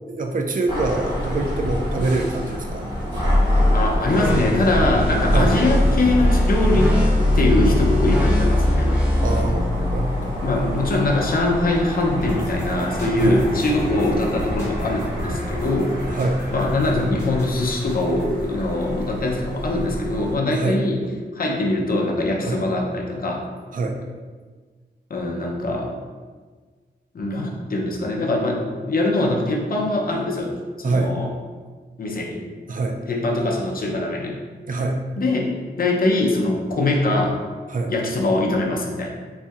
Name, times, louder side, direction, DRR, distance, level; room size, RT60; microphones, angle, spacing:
voice 1, 0.0-2.9 5.3-5.5 9.2-10.4 13.2-13.4 16.1-16.4 20.5-20.8 22.4-22.6 23.7-24.0 30.8-31.1 32.7-33.0 34.7-35.0 37.7-37.9, right 3 dB, 50° right, 3 dB, 0.4 m, -24 dB
sound 1, 0.7-20.4, left 1 dB, 25° right, 1.4 m, -24 dB
voice 2, 3.7-7.0 7.3-8.9 9.4-9.5 10.4-15.9 16.5-21.0 21.3-23.5 25.1-26.0 27.1-30.5 30.8-31.3 32.0-32.4 33.1-34.4 35.2-37.4 37.9-39.1, left 2 dB, 55° left, 0 dB, 0.6 m, -22 dB
sound 2, 4.1-9.4, left 1 dB, 5° right, 0.7 m, -24 dB
sound 3, 12.2-20.0, left 1 dB, 15° left, 1.2 m, -36 dB
4.1 x 2.6 x 2.3 m, 1.5 s
wide cardioid pair, 100°, 18 cm